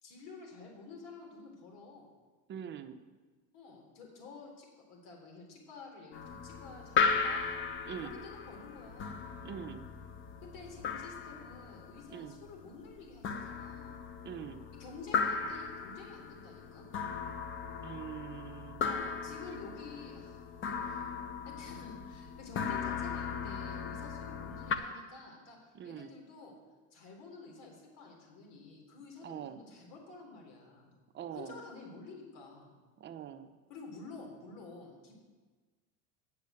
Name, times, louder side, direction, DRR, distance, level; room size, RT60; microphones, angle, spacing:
voice 1, 0.0-2.1 3.5-7.6 8.0-9.2 10.4-14.0 14.8-16.9 18.8-21.1 21.4-25.6 25.8-26.6 26.9-30.9 31.3-32.8 33.7-35.2, left 4 dB, 65° left, 0 dB, 3.8 m, -50 dB
voice 2, 2.5-3.0 7.9-8.1 9.4-9.9 12.1-12.4 14.2-14.6 17.8-18.9 25.7-26.1 29.2-29.6 31.1-31.6 33.0-33.5, right 9 dB, 30° right, 8 dB, 0.8 m, -43 dB
sound 1, 6.1-24.8, left 5 dB, 35° left, 0.8 m, -37 dB
8.4 x 7.5 x 8.3 m, 1.3 s
supercardioid pair, 130°, 35 cm